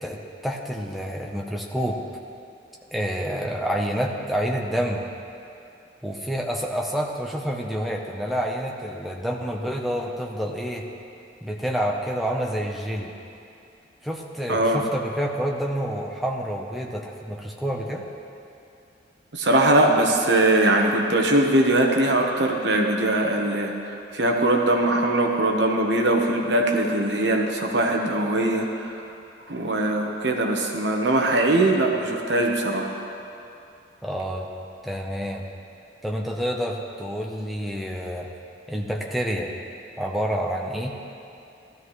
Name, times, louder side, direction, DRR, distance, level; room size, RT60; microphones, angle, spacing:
voice 1, 0.0-2.0 2.9-5.0 6.0-10.9 11.4-13.1 14.0-18.0 34.0-34.5 34.8-35.4 36.0-38.3 38.7-39.5 40.0-40.9, equal, ahead, -1 dB, 0.9 m, -28 dB
voice 2, 14.5-14.8 19.3-28.9 29.5-32.9, right 1 dB, 65° right, 1 dB, 1.1 m, -21 dB
16.5 x 13.0 x 3.2 m, 2.7 s
head